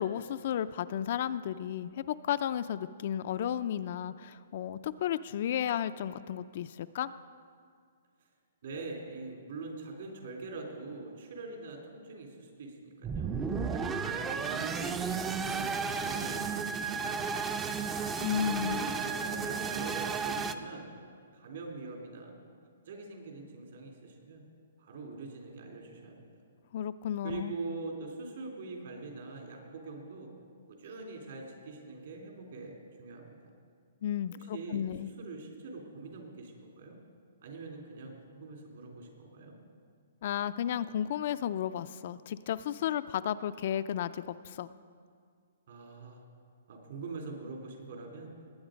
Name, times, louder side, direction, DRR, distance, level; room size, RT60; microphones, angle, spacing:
voice 1, 0.0-7.1 18.2-18.8 26.7-27.5 34.0-35.1 40.2-44.7, left 10 dB, 50° left, 12 dB, 0.4 m, -33 dB
voice 2, 8.6-13.3 13.7-15.7 16.1-17.6 18.3-20.9 21.3-22.4 22.9-24.4 24.8-26.3 27.2-30.3 30.7-33.4 34.3-34.8 35.2-37.0 37.4-39.5 45.7-46.2 46.7-48.3, right 3 dB, 65° right, 1 dB, 3.3 m, -43 dB
sound 1, 13.0-20.6, right 5 dB, 15° right, 0.5 m, -33 dB
19.0 x 8.7 x 5.2 m, 2.2 s
hypercardioid pair, 155°, 0 cm